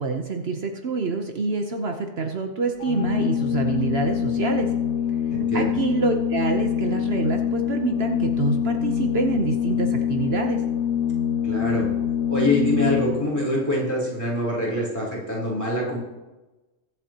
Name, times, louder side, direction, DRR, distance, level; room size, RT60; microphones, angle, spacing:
voice 1, 0.0-4.7 5.5-10.6, right 4 dB, 60° right, 4 dB, 1.2 m, -26 dB
Organ, 2.8-13.5, left 8 dB, 75° left, 0.8 m, -25 dB
voice 2, 5.3-5.7 11.4-11.9 12.3-16.0, left 1 dB, 15° left, -6 dB, 3.7 m, -25 dB
22.5 x 7.9 x 3.0 m, 1.1 s
omnidirectional pair, 1.2 m